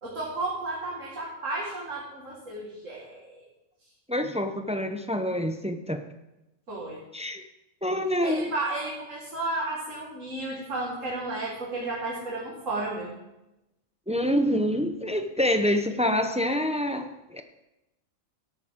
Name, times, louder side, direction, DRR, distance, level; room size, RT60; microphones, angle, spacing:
voice 1, 0.0-3.3 6.7-7.0 8.2-13.1, right 2 dB, 70° right, -4 dB, 2.3 m, -33 dB
voice 2, 4.1-6.0 7.1-7.4 7.8-8.5 14.1-17.4, equal, 10° right, 7 dB, 0.3 m, -26 dB
13.0 x 11.5 x 3.7 m, 0.95 s
omnidirectional pair, 1.4 m